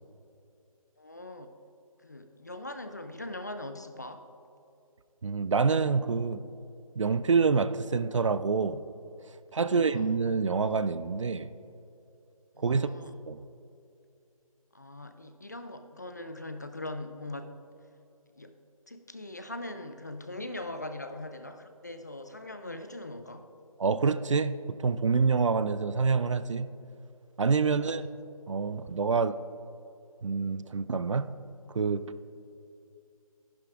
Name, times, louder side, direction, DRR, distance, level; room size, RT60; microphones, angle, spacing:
voice 1, 1.0-1.5 2.0-4.3 9.5-10.2 12.5-13.2 14.7-17.6 18.4-18.6 18.9-23.5 27.6-28.1, left 2 dB, 30° left, 0.3 m, -41 dB
voice 2, 5.2-6.4 7.0-8.8 9.5-11.5 12.6-12.9 13.3-13.4 23.8-26.7 27.4-28.0 28.5-29.4 30.2-31.3 31.7-32.0, right 5 dB, 55° right, 0.4 m, -27 dB
13.0 x 11.0 x 2.4 m
figure-of-eight pair, 160°, 19 cm